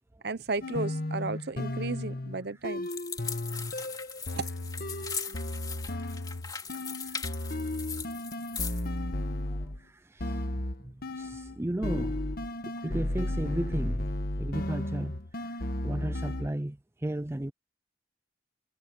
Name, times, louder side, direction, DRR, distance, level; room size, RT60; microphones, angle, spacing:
voice 1, 0.2-2.9 4.3-4.5, right 3 dB, 60° right, 1.0 m, -34 dB
sound 1, 0.6-9.8 10.2-11.6 11.8-16.5, left 1 dB, 50° left, 1.4 m, -34 dB
sound 2, 2.8-8.9, left 6 dB, 20° left, 2.8 m, -39 dB
voice 2, 5.0-5.4 6.0-6.1 7.0-7.2 9.4-10.4 10.8-12.2 12.8-14.0 14.4-17.5, right 1 dB, 15° right, 0.4 m, -35 dB
head